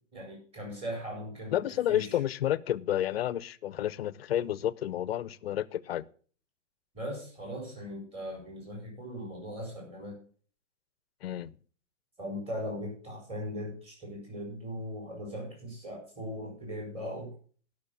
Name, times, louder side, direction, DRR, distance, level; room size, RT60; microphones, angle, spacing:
voice 1, 0.1-1.6 1.9-2.2 6.9-10.2 12.2-17.3, equal, 15° right, -1 dB, 4.9 m, -39 dB
voice 2, 1.5-6.1 11.2-11.5, left 11 dB, 55° left, 18 dB, 0.7 m, -30 dB
12.0 x 6.3 x 6.9 m, 0.43 s
hypercardioid pair, 155°, 37 cm